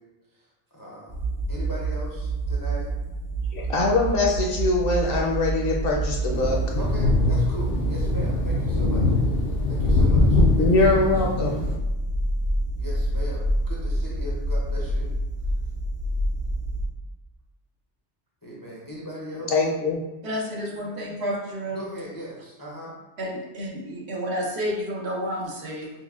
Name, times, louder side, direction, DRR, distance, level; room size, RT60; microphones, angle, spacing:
voice 1, 0.7-1.2 1.5-2.9 6.8-9.1 9.7-11.1 12.7-15.1 18.4-19.6 21.7-22.9, equal, 30° left, -5 dB, 0.4 m, -38 dB
sound 1, 1.1-16.8, right 2 dB, 40° right, 0.5 m, -27 dB
voice 2, 3.5-6.6 10.6-11.6 19.5-20.0, left 3 dB, 60° left, -1 dB, 0.7 m, -22 dB
sound 2, 6.3-11.8, left 3 dB, 80° left, 1.0 m, -23 dB
voice 3, 20.2-21.8 23.2-25.9, equal, 70° right, -2 dB, 1.0 m, -30 dB
6.0 x 2.1 x 2.3 m, 1.0 s
omnidirectional pair, 1.2 m